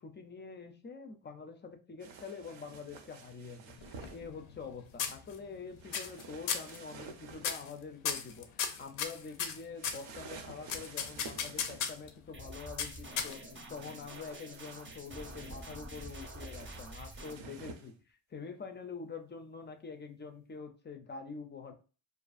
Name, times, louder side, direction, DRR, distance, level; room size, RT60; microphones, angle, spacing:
voice 1, 0.0-21.7, left 5 dB, 25° left, 6 dB, 0.3 m, -46 dB
sound 1, 2.0-4.2 5.8-7.7 9.8-12.1 13.7-17.9, right 4 dB, 70° right, 0.6 m, -51 dB
sound 2, 3.8-4.7 5.0-5.6 5.9-6.2 6.5-6.8 7.4-7.7 8.1-10.1 10.7-12.1 12.8-13.6, left 7 dB, 90° left, 0.5 m, -35 dB
sound 3, 12.3-17.3, right 1 dB, 25° right, 0.6 m, -47 dB
2.5 x 2.4 x 2.4 m, 0.35 s
cardioid pair, 80°, 49 cm